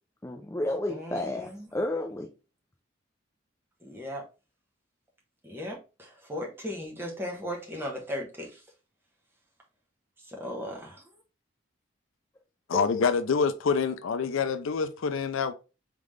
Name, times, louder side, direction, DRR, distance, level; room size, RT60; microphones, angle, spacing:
voice 1, 0.2-2.3 12.7-13.1, left 1 dB, 15° left, 0.4 m, -32 dB
voice 2, 0.9-1.7 3.8-4.2 5.4-8.6 10.3-11.0, equal, 10° right, 1.1 m, -37 dB
voice 3, 12.7-15.5, left 5 dB, 80° left, 0.4 m, -26 dB
3.7 x 3.7 x 3.2 m
head